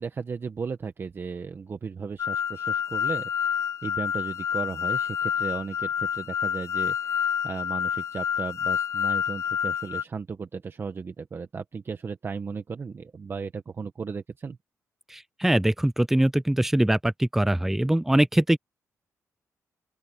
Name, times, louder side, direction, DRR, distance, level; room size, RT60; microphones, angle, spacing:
voice 1, 0.0-14.6, right 5 dB, 40° right, 1.4 m, -35 dB
sound 1, 2.2-10.0, left 8 dB, 50° left, 0.5 m, -28 dB
voice 2, 15.1-18.6, right 1 dB, 5° right, 0.4 m, -22 dB
open air
cardioid pair, 105°, 6 cm